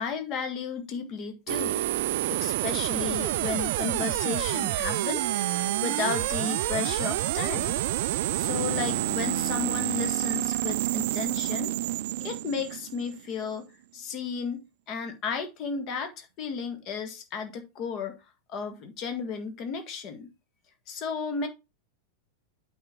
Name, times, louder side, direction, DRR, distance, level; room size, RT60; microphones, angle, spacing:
voice 1, 0.0-1.8 2.3-5.5 5.8-7.8 8.3-11.8 12.2-13.7 13.9-18.2 18.5-20.3 20.9-21.5, left 6 dB, 35° left, 1.8 m, -34 dB
sound 1, 1.5-13.4, right 16 dB, 50° right, 0.3 m, -28 dB
8.6 x 4.3 x 4.9 m
figure-of-eight pair, 90°, 0 cm